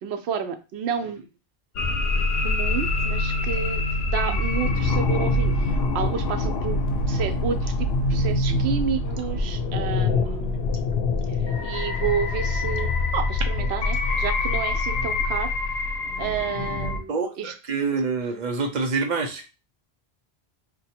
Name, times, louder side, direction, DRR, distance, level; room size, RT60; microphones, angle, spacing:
voice 1, 0.0-1.2 2.4-3.8 4.1-5.5 5.9-6.8 7.1-10.6 11.6-15.5 16.2-17.5, right 7 dB, 85° right, 9 dB, 0.8 m, -30 dB
sound 1, 1.8-17.0, left 2 dB, 75° left, 0.9 m, -25 dB
voice 2, 17.1-19.5, right 4 dB, 50° right, 4 dB, 0.7 m, -27 dB
2.8 x 2.2 x 4.2 m, 0.30 s
omnidirectional pair, 1.1 m